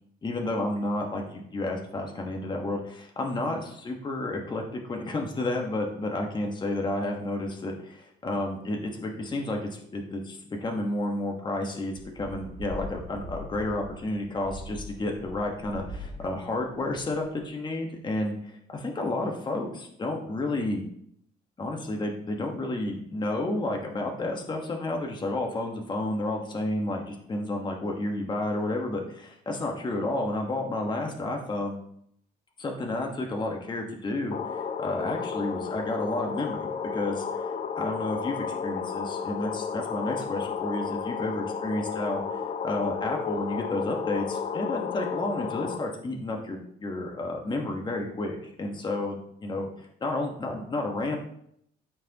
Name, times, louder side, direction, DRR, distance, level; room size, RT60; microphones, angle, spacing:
voice 1, 0.2-20.9 21.6-31.8 32.6-37.5 37.8-51.2, left 2 dB, 25° left, 1 dB, 1.3 m, -31 dB
sound 1, 12.0-17.4, left 1 dB, 55° right, 1.5 m, -42 dB
sound 2, 34.3-45.8, left 6 dB, 40° left, 0.5 m, -32 dB
13.0 x 4.6 x 2.9 m, 0.70 s
cardioid pair, 110°, 17 cm